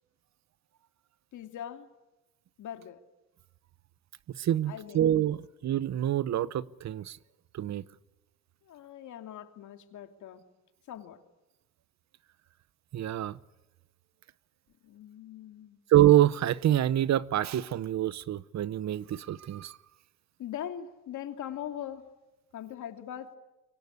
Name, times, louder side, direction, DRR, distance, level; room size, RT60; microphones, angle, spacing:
voice 1, 1.3-1.9 2.6-3.0 4.6-5.0 8.6-10.4 10.9-11.2 14.8-15.8 20.4-22.1 22.5-23.3, left 10 dB, 75° left, 2.8 m, -41 dB
voice 2, 4.3-7.2 7.5-7.8 12.9-13.4 15.9-19.8, right 12 dB, 65° right, 0.9 m, -26 dB
24.5 x 24.0 x 9.8 m
cardioid pair, 90°, 30 cm